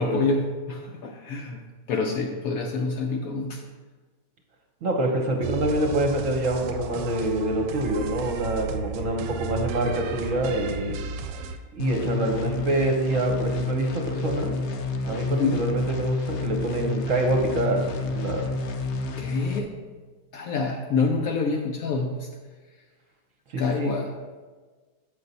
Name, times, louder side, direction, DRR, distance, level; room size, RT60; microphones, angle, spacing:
voice 1, 0.0-1.6 1.9-3.7 15.3-15.7 19.2-19.7 20.3-22.3 23.6-24.2, left 3 dB, 70° left, 3 dB, 0.9 m, -27 dB
voice 2, 4.8-11.0 11.7-14.6 15.0-18.5 23.5-23.9, right 1 dB, 55° right, 2 dB, 1.1 m, -26 dB
sound 1, 5.4-11.6, right 5 dB, 85° right, 1.3 m, -34 dB
sound 2, 11.8-19.6, left 3 dB, 85° left, 0.6 m, -29 dB
8.0 x 5.5 x 4.0 m, 1.4 s
omnidirectional pair, 1.9 m